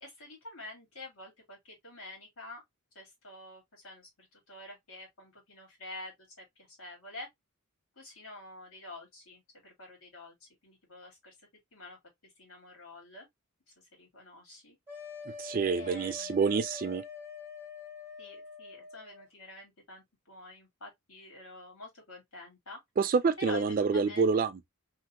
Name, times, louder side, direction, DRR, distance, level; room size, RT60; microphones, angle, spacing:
voice 1, 0.0-2.6 2.9-7.3 8.0-11.3 11.7-12.0 12.4-13.3 14.0-14.8 15.7-16.4 18.2-22.8 23.4-24.5, left 2 dB, 65° left, 2.2 m, -48 dB
sound 1, 14.9-19.3, left 5 dB, 10° right, 1.1 m, -45 dB
voice 2, 15.4-17.0 23.0-24.7, right 5 dB, 40° right, 0.3 m, -27 dB
3.4 x 2.9 x 2.3 m
head